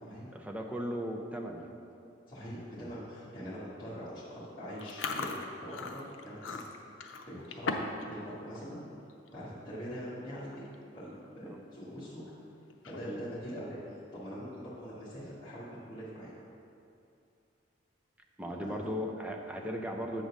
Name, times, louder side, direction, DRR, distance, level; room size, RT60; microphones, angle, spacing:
voice 1, 0.3-1.7 11.4-11.6 13.1-13.2 18.4-20.2, equal, 5° right, 1 dB, 0.5 m, -37 dB
voice 2, 2.3-6.6 7.3-8.8 9.3-10.6 10.9-12.3 12.8-13.8 14.1-16.3 18.5-18.8, equal, 25° left, -13 dB, 1.5 m, -43 dB
Chewing mastication, 4.8-8.0 8.3-8.7 9.1-9.3 10.1-10.2 10.4-10.7 11.2-11.3 12.7-13.3, left 4 dB, 80° left, 0.6 m, -38 dB
8.3 x 3.8 x 6.2 m, 2.6 s
head